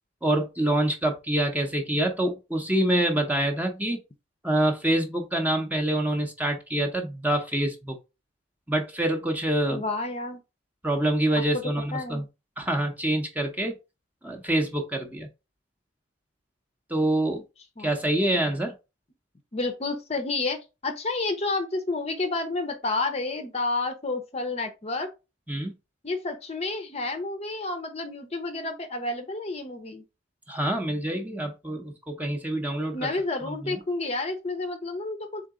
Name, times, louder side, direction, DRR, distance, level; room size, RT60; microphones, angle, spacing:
voice 1, 0.2-4.0 4.4-7.9 8.7-9.8 10.8-12.2 12.6-13.7 14.2-15.3 16.9-17.4 17.8-18.7 25.5-25.7 30.5-33.1 33.4-33.8, right 1 dB, 10° right, 0.7 m, -26 dB
voice 2, 9.7-10.4 11.3-11.4 11.9-12.2 17.3-17.4 17.8-17.9 19.5-25.1 26.0-30.0 32.9-35.4, left 3 dB, 30° left, 0.6 m, -30 dB
3.8 x 3.8 x 3.7 m
head